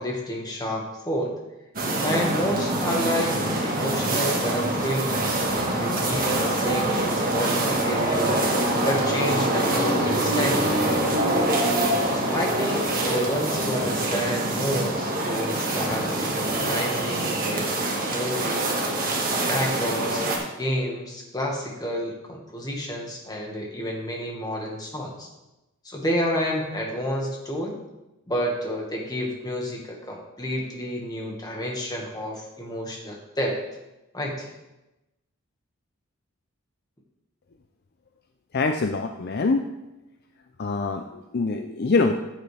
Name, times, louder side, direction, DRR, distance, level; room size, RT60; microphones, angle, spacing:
voice 1, 0.0-1.3 2.0-8.4 8.8-10.9 12.1-18.8 19.5-25.3 25.8-27.8 28.3-33.6 34.1-34.5, equal, 15° left, -1 dB, 1.7 m, -30 dB
sound 1, 1.7-20.4, right 1 dB, 40° right, 1.7 m, -25 dB
voice 2, 38.5-39.7 40.6-42.2, left 3 dB, 45° left, 5 dB, 0.5 m, -24 dB
13.5 x 7.8 x 3.4 m, 0.98 s
head